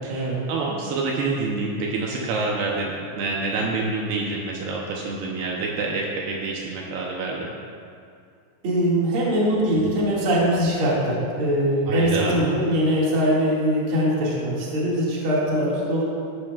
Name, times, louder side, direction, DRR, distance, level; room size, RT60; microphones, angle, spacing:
voice 1, 0.0-7.5 11.9-12.4, right 3 dB, 75° right, -2 dB, 2.8 m, -27 dB
voice 2, 8.6-16.0, equal, 40° right, -6 dB, 2.4 m, -22 dB
14.0 x 11.0 x 2.4 m, 2.3 s
omnidirectional pair, 4.9 m